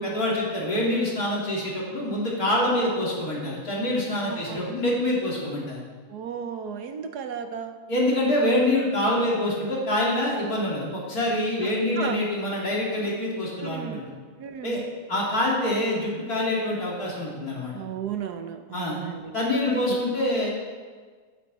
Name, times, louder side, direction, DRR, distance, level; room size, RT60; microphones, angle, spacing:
voice 1, 0.0-5.8 7.9-14.1 14.6-14.8 15.1-17.7 18.7-19.0 19.3-20.5, left 1 dB, 60° left, -5 dB, 3.5 m, -25 dB
voice 2, 4.3-4.8 6.1-7.7 10.4-10.5 11.6-12.2 13.6-14.0 14.4-14.8 17.7-19.3 19.7-19.8, right 8 dB, 75° right, 7 dB, 1.3 m, -35 dB
15.0 x 8.9 x 4.2 m, 1.5 s
omnidirectional pair, 1.8 m